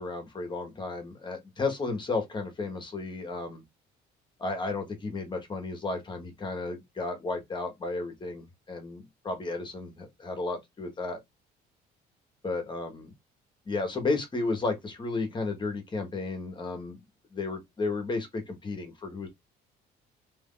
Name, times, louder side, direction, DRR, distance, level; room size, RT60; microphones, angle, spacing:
voice 1, 0.0-3.6 4.4-11.2 12.4-13.1 13.7-17.0 17.3-19.3, left 3 dB, 25° left, 1.3 m, -33 dB
3.1 x 2.7 x 3.8 m
cardioid pair, 110°, 17 cm